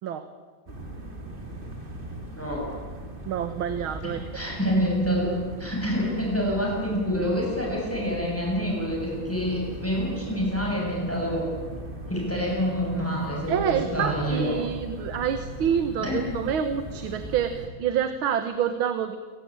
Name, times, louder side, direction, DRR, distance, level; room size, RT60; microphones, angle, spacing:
sound 1, 0.7-17.7, right 1 dB, 25° right, 2.8 m, -39 dB
voice 1, 2.4-2.7 4.0-5.3 5.6-11.5 12.1-14.5 16.0-16.4, equal, 5° left, -2 dB, 7.0 m, -27 dB
voice 2, 3.3-4.2 13.5-19.2, right 8 dB, 85° right, 9 dB, 2.0 m, -27 dB
27.5 x 17.5 x 8.8 m, 1.5 s
omnidirectional pair, 2.2 m